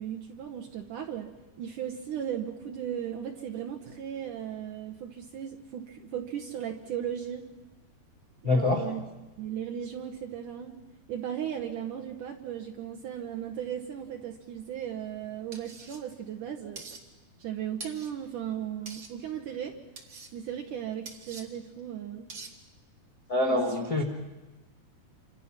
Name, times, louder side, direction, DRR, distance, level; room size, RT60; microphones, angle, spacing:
voice 1, 0.0-1.3 1.6-7.4 8.4-9.0 9.4-10.8 11.1-16.8 17.4-19.7 20.3-22.3 23.5-23.8, right 9 dB, 70° right, 2 dB, 2.0 m, -36 dB
voice 2, 8.4-8.8 23.3-24.0, left 2 dB, 80° left, 1 dB, 0.8 m, -25 dB
sound 1, 15.5-16.0 16.8-17.0 17.8-18.1 18.9-19.1 20.0-20.3 21.1-21.4 22.3-22.5, right 4 dB, 45° right, 1.5 m, -44 dB
28.0 x 26.5 x 5.9 m, 1.1 s
omnidirectional pair, 5.0 m